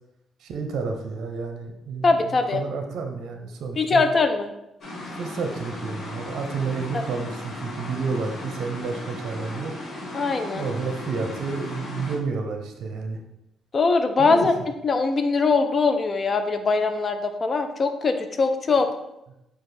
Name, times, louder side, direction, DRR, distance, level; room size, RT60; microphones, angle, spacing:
voice 1, 0.4-4.0 5.1-9.7 10.5-13.2 14.2-14.5, right 4 dB, 70° right, 4 dB, 0.6 m, -30 dB
voice 2, 2.0-2.6 3.8-4.5 10.1-10.7 13.7-14.5 14.8-18.9, left 4 dB, 40° left, 7 dB, 0.5 m, -21 dB
sound 1, 4.8-12.2, left 1 dB, 60° left, 1.3 m, -36 dB
4.8 x 2.4 x 4.2 m, 0.89 s
cardioid pair, 90°, 0 cm